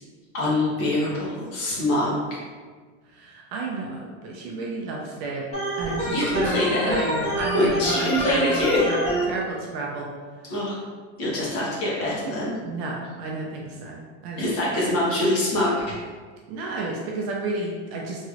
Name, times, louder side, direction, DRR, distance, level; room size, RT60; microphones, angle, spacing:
voice 1, 0.3-2.1 6.1-7.0 7.5-8.8 10.5-10.8 11.2-12.5 14.4-16.0, left 1 dB, 40° left, -6 dB, 1.0 m, -24 dB
voice 2, 3.1-5.5 5.8-10.1 12.6-14.4 16.5-18.3, right 2 dB, 40° right, -2 dB, 0.4 m, -31 dB
Organ, 5.5-9.2, right 1 dB, 20° left, 1.2 m, -28 dB
3.0 x 2.9 x 2.4 m, 1.5 s
supercardioid pair, 160°, 35 cm